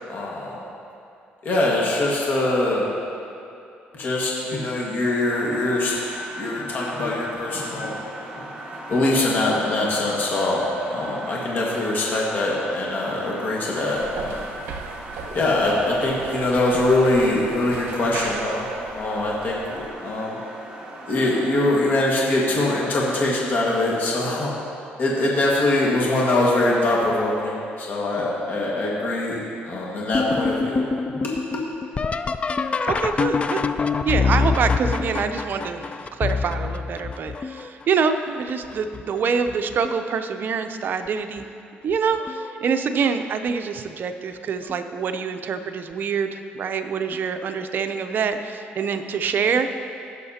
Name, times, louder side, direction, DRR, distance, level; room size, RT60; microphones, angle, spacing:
voice 1, 0.1-0.6 1.4-2.9 3.9-5.9 6.4-8.4 8.9-14.5 15.3-18.6 18.9-20.4 21.1-24.5 25.0-29.4 29.6-30.9 31.2-31.6, left 2 dB, 55° left, -4 dB, 1.7 m, -23 dB
sound 1, 5.3-21.8, right 1 dB, 25° right, 1.7 m, -38 dB
sound 2, 13.9-19.9, right 4 dB, 75° right, 0.9 m, -37 dB
sound 3, 30.1-37.8 38.5-39.0 39.5-40.1 41.4-41.5 42.2-42.5 44.7-44.8 47.1-47.2, left 4 dB, 30° left, 0.3 m, -25 dB
voice 2, 32.9-33.7 34.0-35.8 36.1-41.5 41.8-49.7, right 6 dB, 55° right, 8 dB, 0.6 m, -25 dB
16.5 x 6.5 x 2.8 m, 2.6 s
cardioid pair, 90°, 4 cm